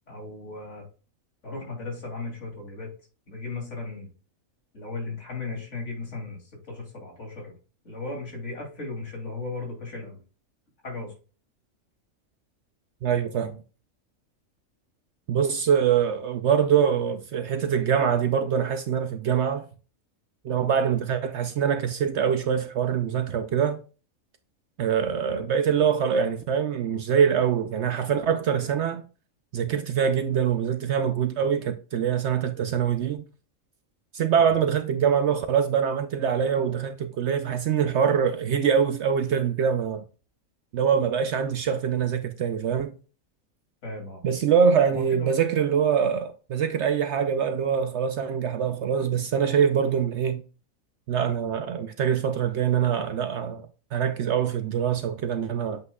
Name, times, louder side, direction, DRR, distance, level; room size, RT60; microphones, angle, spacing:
voice 1, 0.1-0.8 1.4-2.9 3.3-4.1 4.7-7.5 7.8-10.2 10.8-11.1 25.3-25.5 34.4-34.5 43.8-44.2 44.9-45.3, left 3 dB, 55° left, 3.1 m, -36 dB
voice 2, 13.0-13.6 15.3-19.6 20.4-23.8 24.8-29.0 29.5-33.2 34.1-40.0 40.7-42.9 44.2-50.4 51.1-53.7 53.9-55.8, right 7 dB, 65° right, 0.8 m, -24 dB
8.1 x 5.3 x 2.3 m
omnidirectional pair, 1.4 m